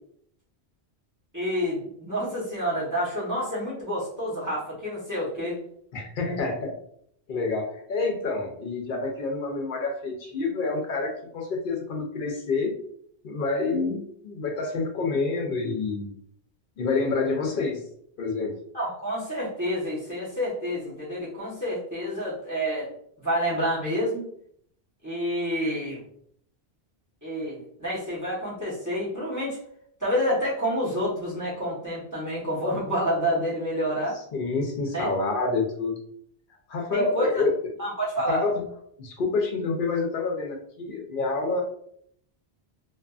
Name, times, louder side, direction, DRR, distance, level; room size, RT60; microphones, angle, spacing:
voice 1, 1.3-5.6 18.7-22.9 23.2-24.2 25.0-26.0 27.2-29.6 30.0-34.2 34.9-35.1 36.9-37.4 37.8-38.4, equal, 20° right, -8 dB, 0.9 m, -28 dB
voice 2, 5.9-6.8 7.3-12.7 13.2-16.2 16.8-17.8 18.2-18.6 34.1-36.0 36.7-37.5 38.3-38.6 39.0-41.6, left 3 dB, 60° left, 1 dB, 0.7 m, -28 dB
2.6 x 2.5 x 2.3 m, 0.66 s
omnidirectional pair, 1.1 m